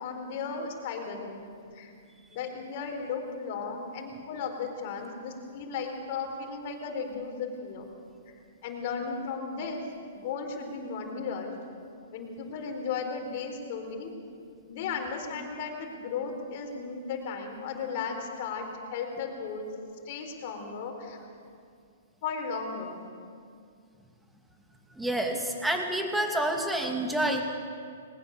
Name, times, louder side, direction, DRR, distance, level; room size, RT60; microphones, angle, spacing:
voice 1, 0.0-1.4 1.7-1.9 2.3-7.9 8.6-9.8 10.1-11.5 12.1-14.1 14.7-19.7 20.0-21.2 22.2-23.0, left 5 dB, 50° left, 3 dB, 4.3 m, -35 dB
voice 2, 25.0-27.4, right 1 dB, 5° right, 3 dB, 2.6 m, -28 dB
20.5 x 20.0 x 6.8 m, 2.3 s
hypercardioid pair, 120°, 0 cm